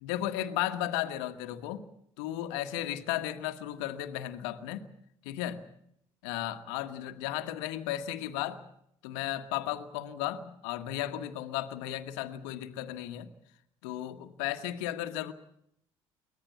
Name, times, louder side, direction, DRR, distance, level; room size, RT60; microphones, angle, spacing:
voice 1, 0.0-1.9 2.2-4.9 5.2-5.7 6.2-8.6 9.0-13.3 13.8-15.3, left 13 dB, 75° left, 10 dB, 1.5 m, -35 dB
24.0 x 18.5 x 8.3 m, 0.74 s
hypercardioid pair, 60°, 15 cm